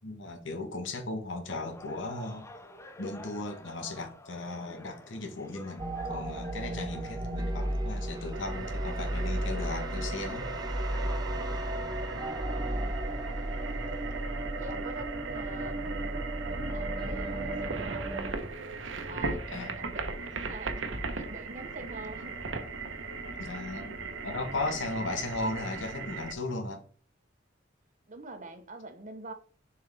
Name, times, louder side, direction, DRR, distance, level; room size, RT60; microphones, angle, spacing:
voice 1, 0.0-2.5 3.0-10.5 19.5-19.8 23.4-24.0 24.2-26.8, left 2 dB, 75° left, 1.3 m, -36 dB
sound 1, 1.5-12.3, left 1 dB, 15° left, 0.6 m, -51 dB
sound 2, 5.8-18.3, right 1 dB, 20° right, 0.7 m, -34 dB
sound 3, 8.3-26.3, right 3 dB, 85° right, 1.1 m, -38 dB
voice 2, 12.4-13.1 14.6-16.1 16.5-18.3 19.0-20.0 20.3-20.8 21.1-22.3 28.1-29.3, right 2 dB, 40° right, 1.1 m, -45 dB
6.8 x 4.7 x 3.5 m
head